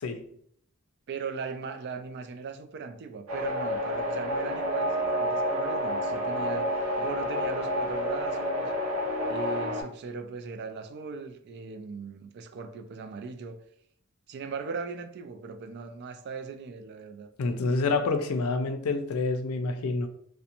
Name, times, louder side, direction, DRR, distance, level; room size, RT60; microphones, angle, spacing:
voice 1, 1.1-8.7 9.2-13.6 14.3-17.3, right 5 dB, 50° right, 0.3 m, -38 dB
sound 1, 3.3-9.8, equal, 85° right, 0.7 m, -29 dB
voice 2, 17.4-20.1, left 3 dB, 80° left, 0.4 m, -27 dB
2.5 x 2.1 x 2.8 m
head